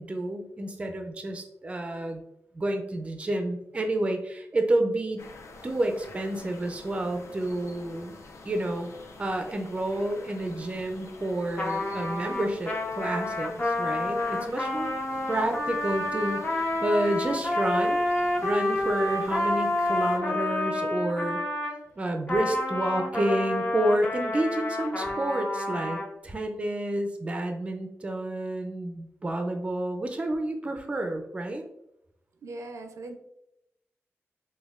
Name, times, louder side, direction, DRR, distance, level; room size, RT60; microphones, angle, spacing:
voice 1, 0.0-2.2 2.5-5.2 5.6-8.2 8.5-8.9 9.2-14.9 15.3-18.0 18.4-21.4 22.0-31.6, right 1 dB, 25° right, 5 dB, 0.4 m, -29 dB
sound 1, 5.2-20.2, left 3 dB, 80° left, 0.5 m, -48 dB
Trumpet, 11.6-21.8 22.3-26.1, left 1 dB, 30° left, 0.6 m, -29 dB
voice 2, 32.4-33.2, right 2 dB, 85° right, 6 dB, 0.4 m, -39 dB
5.1 x 2.2 x 2.4 m, 0.80 s
wide cardioid pair, 155°, 5 cm